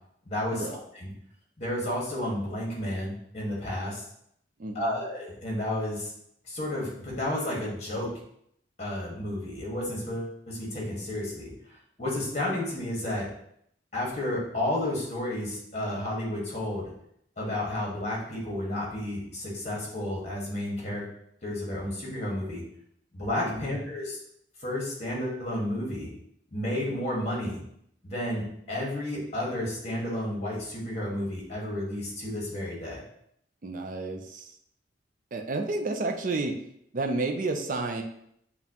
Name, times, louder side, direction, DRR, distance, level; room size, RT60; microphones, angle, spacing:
voice 1, 0.2-1.1 1.6-4.0 4.7-6.1 6.4-8.1 8.8-11.5 12.0-13.3 13.9-16.9 17.4-21.1 21.4-22.6 23.1-24.2 24.6-26.1 26.5-27.6 28.0-33.0, left 1 dB, 40° left, -4 dB, 1.5 m, -31 dB
voice 2, 4.6-5.0 23.4-23.7 33.6-34.5 35.3-36.6 36.9-38.0, right 2 dB, 45° right, 3 dB, 0.5 m, -31 dB
7.0 x 2.3 x 2.8 m, 0.72 s
head